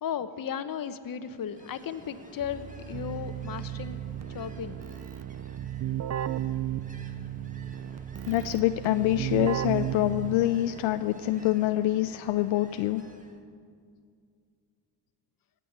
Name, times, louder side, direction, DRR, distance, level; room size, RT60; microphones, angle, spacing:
voice 1, 0.0-4.0 4.3-4.9, left 8 dB, 45° left, 11 dB, 1.0 m, -35 dB
Ocean, 1.2-13.4, right 2 dB, 15° right, 1.7 m, -50 dB
Keyboard (musical), 2.4-10.7, right 11 dB, 35° right, 0.5 m, -34 dB
voice 2, 8.3-13.0, left 14 dB, 75° left, 10 dB, 0.6 m, -26 dB
17.5 x 6.9 x 9.4 m, 2.2 s
supercardioid pair, 70°, 47 cm